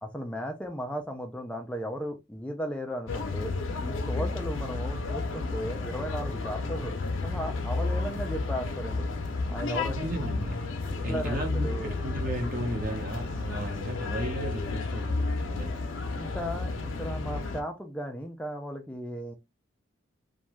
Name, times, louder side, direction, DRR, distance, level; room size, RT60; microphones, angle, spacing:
voice 1, 0.0-3.5 3.8-6.9 7.2-9.1 9.5-10.0 11.1-12.0 16.1-19.3, equal, 5° left, 0.3 m, -36 dB
sound 1, 3.1-17.6, left 3 dB, 80° left, 0.5 m, -32 dB
voice 2, 10.0-10.7 11.0-15.8, right 1 dB, 45° right, 0.8 m, -35 dB
2.5 x 2.3 x 3.0 m
head